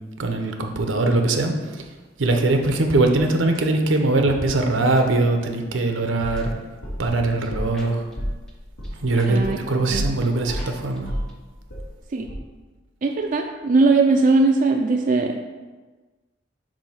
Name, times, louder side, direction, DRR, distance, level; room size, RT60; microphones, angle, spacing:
voice 1, 0.2-1.8 2.2-6.5 7.0-8.0 9.0-11.1, right 2 dB, 80° right, 4 dB, 0.8 m, -21 dB
sound 1, 3.5-3.6 4.2-4.5 4.9-5.0 6.2-6.4 7.1-8.1 8.5-8.6 8.8-8.9 9.2-9.3 9.5-9.6 9.9-10.3 10.6-10.7 11.0-11.1 11.3-11.4, equal, ahead, 0.7 m, -38 dB
sound 2, 6.2-7.8 8.2-10.2 10.5-12.0 12.3-12.4, equal, 75° left, 2.0 m, -31 dB
voice 2, 9.3-9.6 9.9-10.1 12.1-12.3 13.0-15.4, right 3 dB, 45° right, 2 dB, 0.4 m, -19 dB
7.4 x 2.7 x 5.6 m, 1.3 s
head